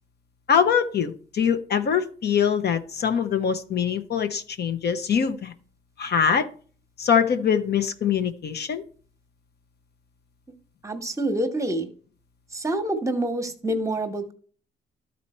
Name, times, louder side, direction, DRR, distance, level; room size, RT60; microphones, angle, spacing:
voice 1, 0.5-5.5 6.0-6.5 7.0-8.8, left 7 dB, 55° left, 0.8 m, -23 dB
voice 2, 10.8-11.9 12.5-14.3, right 1 dB, 15° right, 1.1 m, -27 dB
12.0 x 4.2 x 4.3 m
cardioid pair, 90°, 20 cm